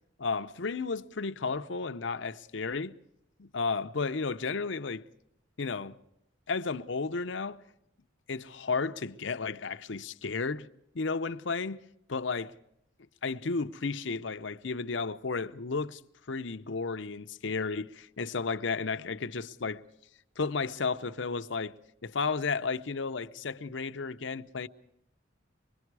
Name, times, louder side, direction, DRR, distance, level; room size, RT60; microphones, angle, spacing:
voice 1, 0.2-2.9 3.4-5.1 5.6-6.0 6.5-7.6 8.3-10.7 10.9-12.5 13.2-16.0 16.3-19.8 20.4-21.8 22.0-24.7, left 4 dB, 65° left, 0.7 m, -33 dB
25.5 x 22.0 x 4.7 m
head